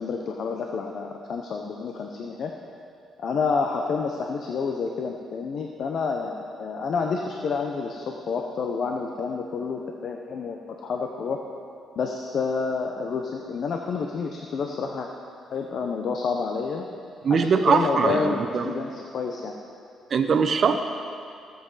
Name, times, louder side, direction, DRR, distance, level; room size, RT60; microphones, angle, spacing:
voice 1, 0.0-2.5 3.2-11.4 12.0-15.1 15.5-16.8 17.3-19.6, left 5 dB, 60° left, 2 dB, 0.8 m, -29 dB
voice 2, 17.2-18.7 20.1-20.8, right 5 dB, 50° right, 6 dB, 0.9 m, -21 dB
16.5 x 7.9 x 4.1 m, 2.4 s
cardioid pair, 90°, 0 cm